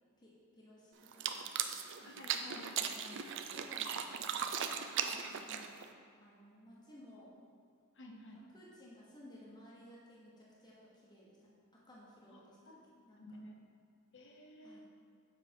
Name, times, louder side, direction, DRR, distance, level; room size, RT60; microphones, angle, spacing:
voice 1, 0.2-1.5 2.0-2.2 3.5-5.7 6.2-7.3 8.5-12.6 13.1-13.2 14.6-14.8, equal, 20° left, -6 dB, 1.0 m, -58 dB
sound 1, 1.1-5.9, right 8 dB, 55° right, 0.4 m, -38 dB
voice 2, 2.0-3.3 5.0-5.6 7.9-8.4 12.3-12.8 13.2-13.7 14.1-14.8, left 1 dB, 60° left, 1 dB, 0.9 m, -53 dB
7.3 x 4.7 x 4.4 m, 2.3 s
head